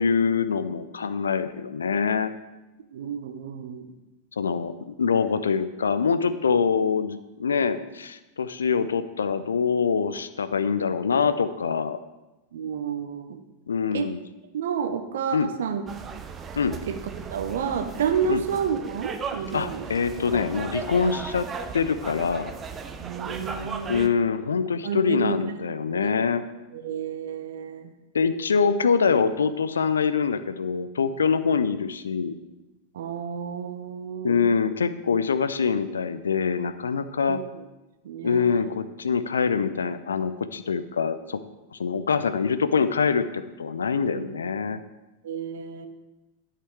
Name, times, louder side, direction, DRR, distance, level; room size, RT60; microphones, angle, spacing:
voice 1, 0.0-2.3 4.4-12.0 13.7-14.2 15.3-15.5 16.6-16.8 18.3-18.4 19.5-21.5 21.7-22.5 23.9-26.4 28.1-32.4 34.2-37.4 38.2-41.4 41.7-44.8, left 5 dB, 70° left, 12 dB, 0.5 m, -24 dB
voice 2, 2.9-3.9 12.5-13.4 13.9-14.1 14.5-15.8 16.8-17.0 17.3-19.9 20.3-20.5 23.0-24.0 24.8-25.4 25.9-26.1 26.7-27.9 32.9-34.5 37.3-37.4 38.0-38.7 44.1-44.3 45.2-45.9, right 7 dB, 60° right, 9 dB, 0.9 m, -30 dB
sound 1, 15.9-24.1, right 5 dB, 25° right, 0.7 m, -36 dB
11.5 x 5.9 x 4.8 m, 1.0 s
figure-of-eight pair, 90°, 0 cm